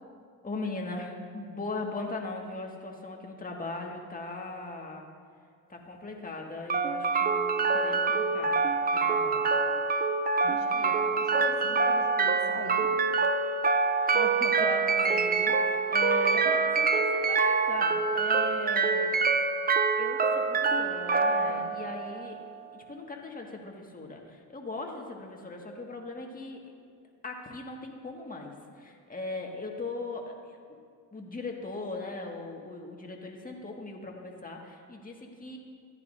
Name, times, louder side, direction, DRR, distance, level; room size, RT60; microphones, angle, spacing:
voice 1, 0.4-5.1 5.7-8.6 8.9-9.5 14.1-19.2 20.0-22.4 22.7-26.6 27.2-30.6 31.1-35.6, left 3 dB, 20° left, 0 dB, 1.8 m, -39 dB
sound 1, 6.7-22.7, right 4 dB, 20° right, 0.6 m, -26 dB
voice 2, 10.4-12.9 21.5-21.8, left 5 dB, 80° left, 2 dB, 1.2 m, -42 dB
14.5 x 9.8 x 2.7 m, 2.1 s
hypercardioid pair, 60°, 43 cm